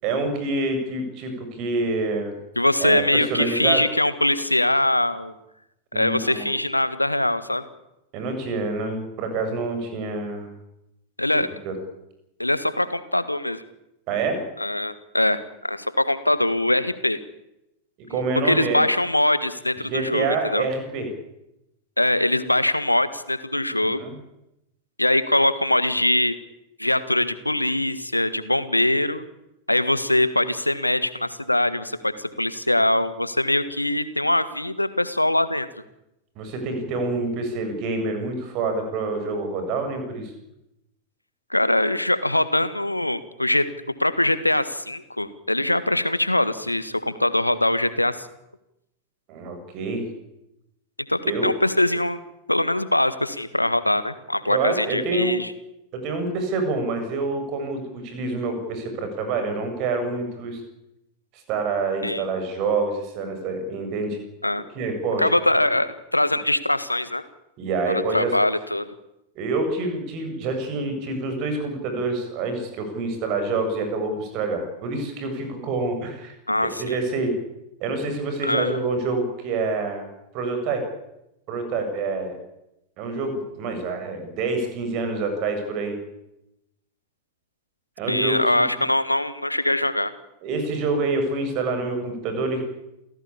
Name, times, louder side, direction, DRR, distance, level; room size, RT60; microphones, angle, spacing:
voice 1, 0.0-2.3 2.8-3.8 5.9-6.5 8.1-10.5 11.6-11.7 14.1-14.4 18.1-18.8 19.9-21.1 24.0-24.1 36.4-40.3 49.3-50.0 51.2-51.5 54.5-55.4 56.0-60.6 61.5-64.2 64.8-65.2 67.6-68.3 69.3-76.3 76.8-77.3 77.8-80.0 80.3-80.8 81.5-82.4 83.0-85.9 88.0-88.4 90.4-92.6, right 3 dB, 40° right, 6 dB, 7.7 m, -27 dB
voice 2, 2.6-5.3 5.9-7.6 11.2-11.5 12.4-13.6 14.6-17.2 18.4-20.7 22.0-24.0 25.0-26.4 26.8-29.2 29.7-35.7 41.5-43.7 44.0-48.3 51.1-52.2 52.5-55.5 62.0-62.2 64.4-64.6 65.2-67.2 68.1-68.9 76.5-77.0 78.4-78.8 88.1-90.1, left 1 dB, 85° left, 14 dB, 1.6 m, -22 dB
28.5 x 16.5 x 8.7 m, 0.88 s
figure-of-eight pair, 90°, 0 cm